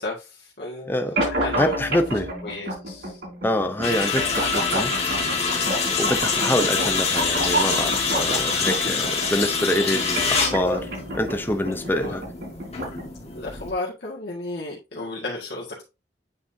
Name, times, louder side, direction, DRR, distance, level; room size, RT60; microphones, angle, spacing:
voice 1, 0.0-2.0 2.4-3.2 6.3-6.7 12.0-12.2 13.3-15.8, left 2 dB, 65° left, 1.8 m, -34 dB
voice 2, 0.9-1.2 1.6-2.3 3.4-4.9 6.0-10.9 11.1-12.2, left 1 dB, 10° left, 0.6 m, -25 dB
sound 1, 1.2-13.2, right 1 dB, 70° right, 4.2 m, -30 dB
sound 2, 3.8-13.7, left 5 dB, 35° left, 1.8 m, -26 dB
8.7 x 4.1 x 2.7 m
head